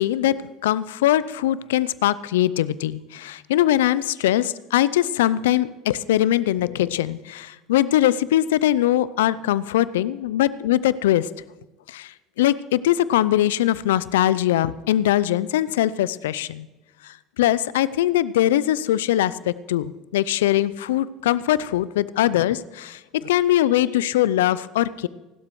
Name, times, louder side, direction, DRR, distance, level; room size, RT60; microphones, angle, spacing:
voice 1, 0.0-11.3 11.9-16.7 17.0-25.1, left 13 dB, 80° left, 19 dB, 0.5 m, -21 dB
29.0 x 12.5 x 3.1 m, 1.1 s
hypercardioid pair, 70°, 0 cm